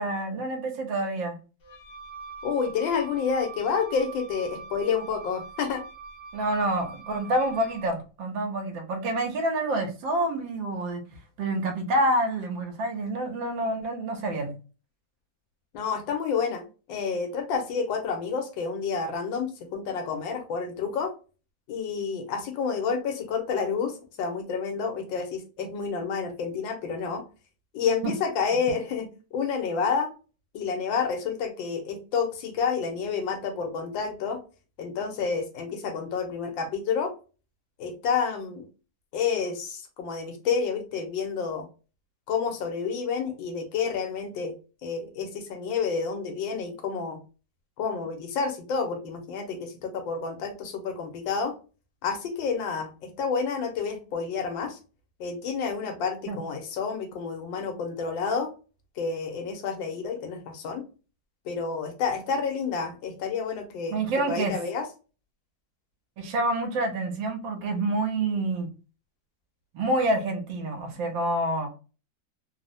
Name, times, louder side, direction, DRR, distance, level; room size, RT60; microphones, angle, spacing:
voice 1, 0.0-1.3 6.3-11.0 11.4-14.5 28.0-28.1 56.3-56.4 63.9-64.6 66.2-68.7 69.7-71.7, right 1 dB, 80° right, 4 dB, 1.5 m, -27 dB
Wind instrument woodwind instrument, 1.6-7.9, right 4 dB, 50° left, 0.9 m, -43 dB
voice 2, 2.4-5.8 15.7-16.6 16.9-21.1 21.7-27.2 27.7-29.1 29.3-30.1 30.5-34.4 34.8-37.1 37.8-38.7 39.1-41.7 42.3-44.5 44.8-47.2 47.8-51.5 52.0-54.8 55.2-58.5 59.0-60.8 61.4-64.9, left 5 dB, 80° left, 4 dB, 1.5 m, -29 dB
3.5 x 2.0 x 2.6 m, 0.34 s
omnidirectional pair, 2.0 m